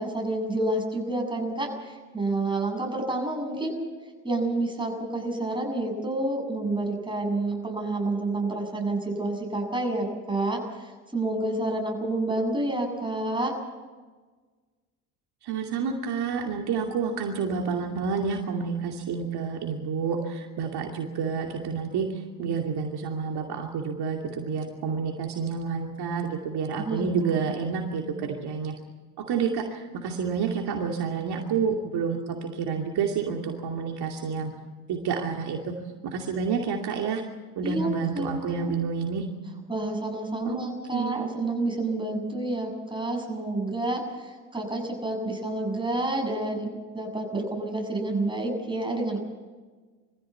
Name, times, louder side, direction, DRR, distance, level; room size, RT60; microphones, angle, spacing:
voice 1, 0.0-3.9 4.2-13.5 26.8-27.4 37.6-38.7 39.7-46.7 46.9-49.2, right 2 dB, 10° right, 1 dB, 7.6 m, -29 dB
voice 2, 15.4-28.7 29.2-34.5 34.9-35.7 36.0-37.2 37.6-39.3 40.5-40.6 40.9-41.3, right 6 dB, 55° right, 2 dB, 2.6 m, -29 dB
23.5 x 15.5 x 8.3 m, 1.4 s
hypercardioid pair, 70°, 48 cm